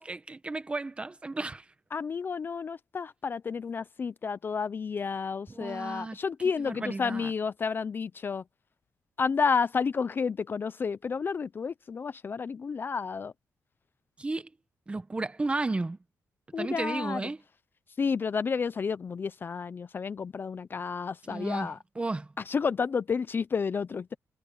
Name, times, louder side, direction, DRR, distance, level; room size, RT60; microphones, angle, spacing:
voice 1, 0.0-1.6 5.5-6.2 6.6-7.3 14.2-14.5 14.9-16.0 16.6-17.4 21.3-22.3, right 3 dB, 20° right, 1.3 m, -33 dB
voice 2, 1.9-8.4 9.2-13.3 16.5-17.2 18.0-21.8 22.5-24.1, left 5 dB, 35° left, 0.4 m, -31 dB
wide cardioid pair, 140°, 6 cm